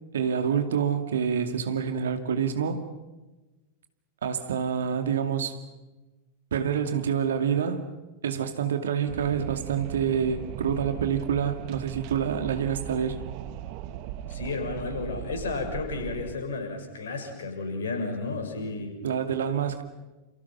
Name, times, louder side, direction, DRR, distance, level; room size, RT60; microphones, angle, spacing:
voice 1, 0.1-2.8 4.2-5.6 6.5-7.9 8.2-13.2 19.0-19.8, right 7 dB, 65° right, 7 dB, 2.4 m, -27 dB
Wind, 9.1-16.4, right 11 dB, 45° right, 1.6 m, -38 dB
voice 2, 14.3-19.0, left 3 dB, 65° left, 5 dB, 6.0 m, -32 dB
29.5 x 29.0 x 5.8 m, 1.1 s
figure-of-eight pair, 90°, 0 cm